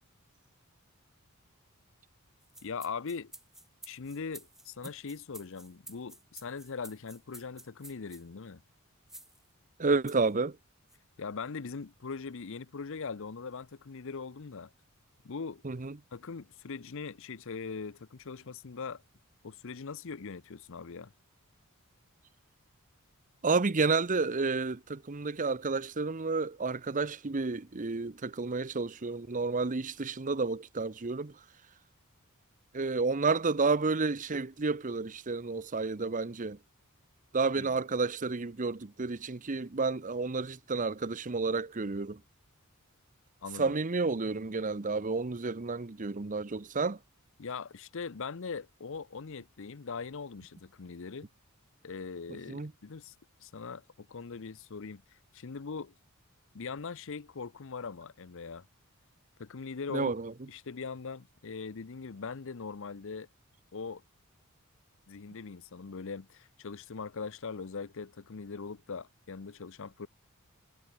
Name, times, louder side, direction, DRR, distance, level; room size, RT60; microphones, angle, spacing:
sound 1, 2.4-8.2 9.1-9.4 10.1-10.3 10.9-11.0, right 1 dB, ahead, 1.0 m, -51 dB
voice 1, 2.6-3.3 3.9-8.6 11.2-14.7 15.2-15.6 16.1-19.0 19.4-21.1 37.6-37.7 43.4-43.7 47.4-51.3 51.8-53.1 53.4-55.9 56.5-58.6 59.4-60.1 60.5-63.3 63.7-64.0 65.1-70.1, left 5 dB, 60° left, 0.7 m, -41 dB
voice 2, 9.8-10.6 15.6-16.0 23.4-31.3 32.7-36.6 37.3-42.2 43.6-47.0 52.3-52.7 59.9-60.3, right 4 dB, 35° right, 0.7 m, -31 dB
head